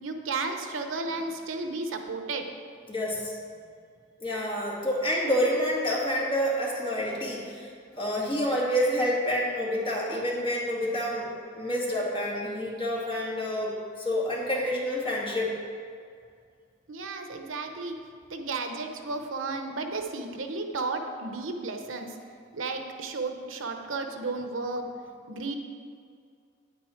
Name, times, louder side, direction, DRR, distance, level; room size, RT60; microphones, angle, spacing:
voice 1, 0.0-2.5 16.9-18.0 18.3-22.2 22.5-24.9 25.3-25.5, right 3 dB, 80° right, 5 dB, 0.9 m, -33 dB
voice 2, 2.9-3.4 4.2-11.3 11.5-15.5, equal, 25° left, -5 dB, 2.1 m, -28 dB
9.2 x 9.2 x 4.4 m, 2.3 s
head